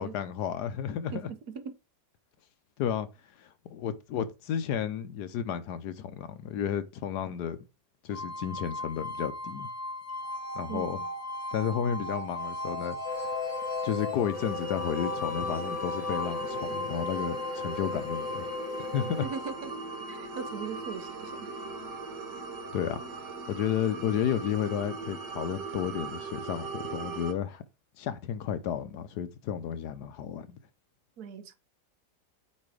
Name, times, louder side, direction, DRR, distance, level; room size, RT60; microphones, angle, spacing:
voice 1, 0.0-1.3 2.8-3.1 3.4-7.6 8.0-9.7 10.5-11.0 11.5-13.0 13.8-19.3 22.7-23.0 23.5-27.6 28.0-30.6, left 9 dB, 75° left, 1.3 m, -32 dB
voice 2, 1.1-1.7 10.7-11.1 19.2-19.8 20.1-21.5 31.2-31.6, right 6 dB, 65° right, 1.3 m, -39 dB
sound 1, 8.1-23.0, left 2 dB, 30° left, 0.7 m, -38 dB
sound 2, 13.1-19.3, left 5 dB, 55° left, 1.2 m, -38 dB
sound 3, 14.3-27.3, right 4 dB, 85° right, 2.0 m, -40 dB
8.5 x 3.2 x 4.8 m
omnidirectional pair, 1.8 m